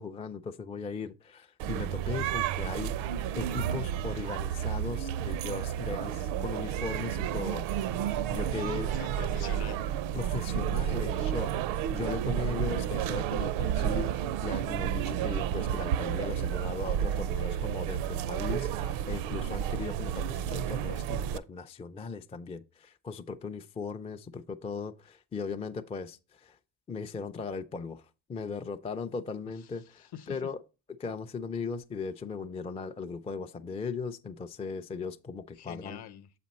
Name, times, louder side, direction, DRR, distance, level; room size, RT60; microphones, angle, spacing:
voice 1, 0.0-2.9 3.3-8.9 10.1-26.6 26.9-28.0 28.3-30.6 31.0-36.0, left 4 dB, 15° left, 0.3 m, -38 dB
sound 1, 1.6-21.4, right 10 dB, 65° right, 0.6 m, -31 dB
voice 2, 8.9-9.8 29.5-30.5 35.5-36.3, left 9 dB, 50° left, 0.8 m, -45 dB
7.3 x 4.3 x 4.1 m
hypercardioid pair, 60°, 50 cm